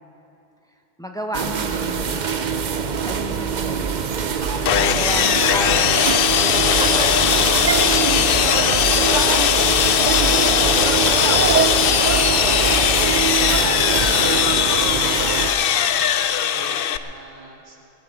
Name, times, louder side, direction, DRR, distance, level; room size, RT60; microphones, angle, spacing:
voice 1, 1.0-2.6 3.0-4.0 4.7-7.6, right 1 dB, 5° left, 2 dB, 1.1 m, -34 dB
sound 1, 1.3-15.5, right 6 dB, 50° right, 0.8 m, -23 dB
Sawing, 4.7-17.0, left 9 dB, 65° left, 0.7 m, -19 dB
voice 2, 8.2-11.6 11.9-17.8, right 2 dB, 85° right, -1 dB, 2.4 m, -39 dB
21.5 x 11.5 x 4.8 m, 2.8 s
omnidirectional pair, 1.1 m